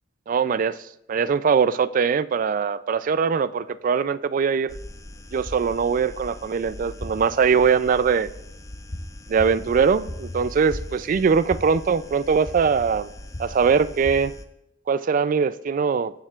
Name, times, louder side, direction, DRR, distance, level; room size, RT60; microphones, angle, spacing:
voice 1, 0.3-0.8 1.1-4.7 5.3-8.3 9.3-13.1 13.4-14.3 14.9-16.1, right 6 dB, 45° right, 0.3 m, -21 dB
sound 1, 4.7-14.4, left 1 dB, 15° left, 0.5 m, -38 dB
18.0 x 7.3 x 2.4 m
head